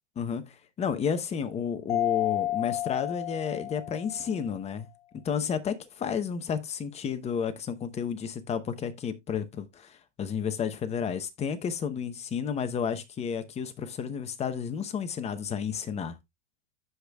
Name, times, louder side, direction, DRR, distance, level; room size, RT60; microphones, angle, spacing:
voice 1, 0.2-4.9 5.1-16.2, left 7 dB, 20° left, 0.8 m, -32 dB
Mallet percussion, 1.9-4.4, left 14 dB, 60° left, 3.6 m, -31 dB
14.5 x 5.1 x 2.2 m
hypercardioid pair, 130°, 36 cm